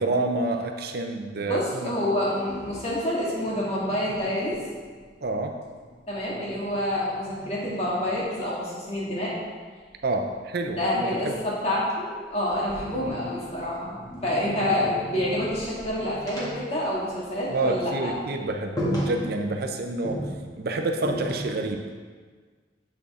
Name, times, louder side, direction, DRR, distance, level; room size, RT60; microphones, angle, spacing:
voice 1, 0.0-1.9 5.2-5.6 10.0-11.1 17.5-20.2 20.6-21.8, right 2 dB, 60° right, 4 dB, 0.6 m, -28 dB
voice 2, 1.3-4.6 6.1-9.3 10.7-18.1, left 1 dB, 35° left, -7 dB, 2.2 m, -28 dB
sound 1, 2.1-5.3 5.6-8.5 9.9-11.9 12.3-17.6 17.9-18.0 18.4-18.5 18.8-19.7 20.0-21.8, equal, 20° left, 1.7 m, -37 dB
8.3 x 6.2 x 3.7 m, 1.5 s
head